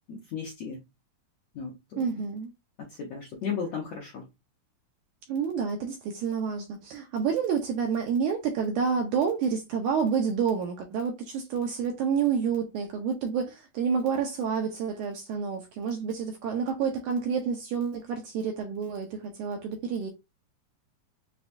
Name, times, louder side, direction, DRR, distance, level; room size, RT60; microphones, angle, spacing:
voice 1, 0.1-0.8 1.5-1.7 2.9-4.2, left 6 dB, 70° left, 1.5 m, -34 dB
voice 2, 2.0-2.5 5.3-20.1, right 6 dB, 80° right, 1.9 m, -29 dB
6.8 x 2.3 x 2.6 m
omnidirectional pair, 4.1 m